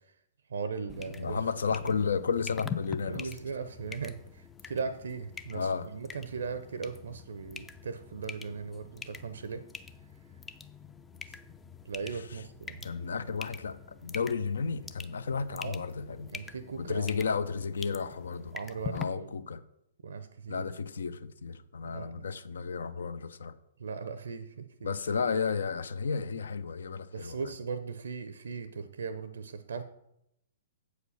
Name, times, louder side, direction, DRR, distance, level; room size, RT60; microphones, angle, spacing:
voice 1, 0.5-1.4 1.8-2.0 3.1-9.6 11.8-12.9 15.6-15.8 16.3-17.2 18.5-19.3 20.0-20.7 21.8-22.3 23.8-24.9 27.1-29.8, right 5 dB, 65° right, 11 dB, 0.6 m, -38 dB
sound 1, 0.9-19.0, left 6 dB, 10° left, 0.4 m, -45 dB
voice 2, 1.2-3.3 5.5-5.9 12.1-12.2 12.8-16.3 16.8-18.6 18.9-19.6 20.5-23.5 24.8-27.4, left 5 dB, 65° left, 13 dB, 0.6 m, -33 dB
8.1 x 5.0 x 6.4 m, 0.80 s
figure-of-eight pair, 115°, 0 cm